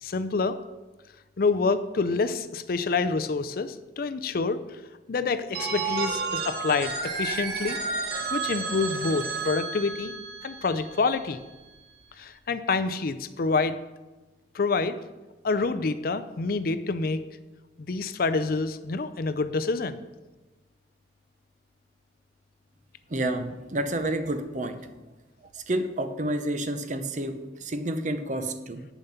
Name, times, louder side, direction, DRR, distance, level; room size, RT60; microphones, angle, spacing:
voice 1, 0.0-0.6 1.4-4.8 5.1-7.8 8.3-10.1 10.4-11.4 12.2-13.8 14.5-15.0 15.4-17.3 17.8-20.0, left 4 dB, 50° left, 13 dB, 0.4 m, -27 dB
Telephone, 5.5-11.3, right 4 dB, 55° right, 1.2 m, -31 dB
voice 2, 23.1-24.8 25.7-28.9, right 1 dB, 40° right, 9 dB, 0.7 m, -29 dB
8.1 x 7.2 x 5.7 m, 1.2 s
head